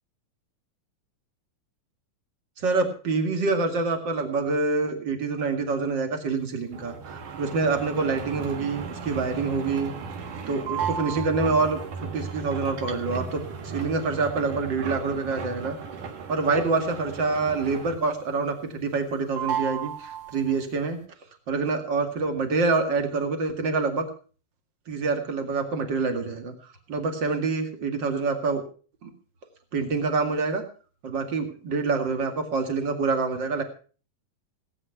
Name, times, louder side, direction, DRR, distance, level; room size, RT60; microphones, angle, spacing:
voice 1, 2.6-9.9 10.5-15.8 16.3-21.0 21.5-24.1 24.9-28.6 29.0-29.1 29.7-30.6 31.0-33.6, right 4 dB, 35° right, 6 dB, 2.4 m, -26 dB
sound 1, 6.7-18.2 18.5-19.1 19.4-20.7, right 6 dB, 65° right, 3.1 m, -35 dB
18.0 x 9.7 x 5.8 m, 0.40 s
omnidirectional pair, 4.0 m